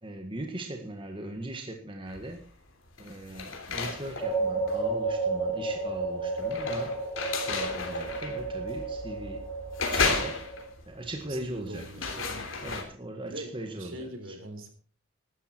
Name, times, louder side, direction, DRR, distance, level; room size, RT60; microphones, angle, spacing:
voice 1, 0.0-2.4 3.0-7.0 7.4-9.4 9.9-10.4 10.8-12.1 12.6-14.4, right 1 dB, 25° right, 4 dB, 1.8 m, -39 dB
sound 1, 2.1-2.5 2.9-12.8, left 4 dB, 65° left, 3.4 m, -34 dB
sound 2, 4.2-10.6, right 3 dB, 15° left, 6.0 m, -32 dB
voice 2, 11.3-12.5 13.2-13.5 13.8-14.7, right 1 dB, 65° right, 7 dB, 3.7 m, -42 dB
15.5 x 12.5 x 4.5 m, 0.40 s
head